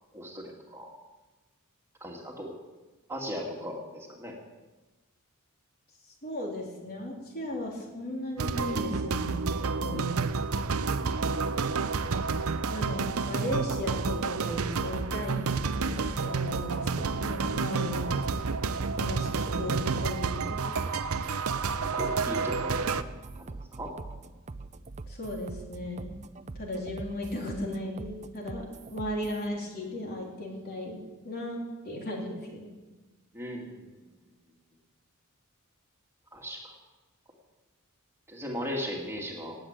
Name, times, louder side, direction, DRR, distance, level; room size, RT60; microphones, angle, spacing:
voice 1, 0.1-0.9 2.0-2.5 3.1-4.4 9.9-10.0 21.9-23.1 23.4-23.9 33.3-33.8 36.3-36.8 38.3-39.6, equal, 10° right, -1 dB, 2.2 m, -37 dB
voice 2, 6.2-10.2 12.7-18.2 19.0-20.8 25.1-26.2 26.6-32.7, left 1 dB, 45° left, -1 dB, 3.6 m, -36 dB
sound 1, 8.4-23.0, right 4 dB, 70° right, 0.7 m, -30 dB
sound 2, 13.5-29.5, right 3 dB, 30° right, 0.5 m, -43 dB
18.5 x 8.0 x 9.0 m, 1.2 s
head